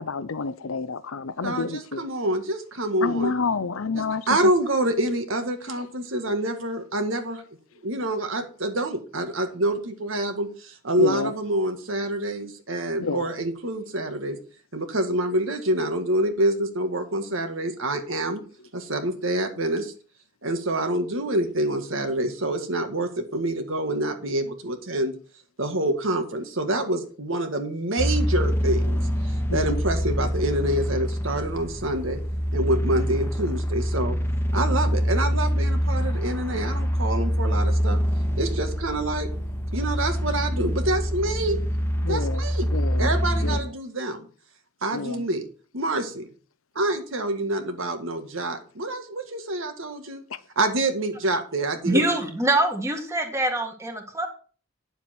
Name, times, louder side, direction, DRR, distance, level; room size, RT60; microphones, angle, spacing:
voice 1, 0.0-2.0 3.0-4.5 11.0-11.3 13.0-13.3 29.5-29.8 42.0-42.4 42.7-43.1 43.4-43.6 44.9-45.2, left 4 dB, 85° left, 0.7 m, -29 dB
voice 2, 1.4-3.3 3.9-7.4 7.8-14.4 14.7-18.4 18.7-19.9 20.4-25.2 25.6-28.9 29.3-32.2 32.5-34.2 34.5-38.0 38.4-39.3 39.7-41.6 42.1-42.7 43.0-44.3 44.8-45.5 45.7-46.2 46.8-50.2 50.6-52.0, right 1 dB, 70° right, 1.8 m, -27 dB
sound 1, 28.0-43.6, equal, 10° left, 1.1 m, -25 dB
voice 3, 51.9-54.3, right 1 dB, 15° right, 1.8 m, -24 dB
9.7 x 7.4 x 4.4 m
head